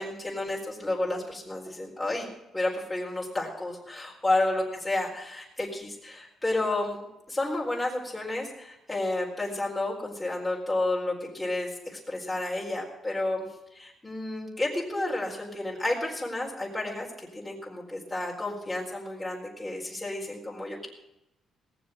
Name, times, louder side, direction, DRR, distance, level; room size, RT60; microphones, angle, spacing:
voice 1, 0.0-2.3 2.5-5.1 5.6-7.0 7.3-13.5 13.7-17.1 17.3-20.9, left 2 dB, 10° left, -3 dB, 4.3 m, -31 dB
18.5 x 7.5 x 7.8 m, 0.89 s
cardioid pair, 90°, 0 cm